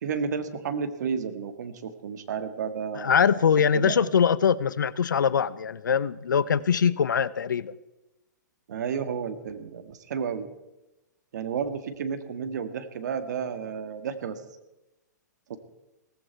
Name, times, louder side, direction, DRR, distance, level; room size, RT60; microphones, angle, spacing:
voice 1, 0.0-3.5 3.7-4.1 8.7-10.5 11.3-14.4 15.5-15.6, right 6 dB, 65° right, 9 dB, 1.7 m, -32 dB
voice 2, 3.0-7.7, left 7 dB, 85° left, 18 dB, 0.7 m, -23 dB
17.5 x 15.0 x 4.5 m, 1.0 s
hypercardioid pair, 125°, 10 cm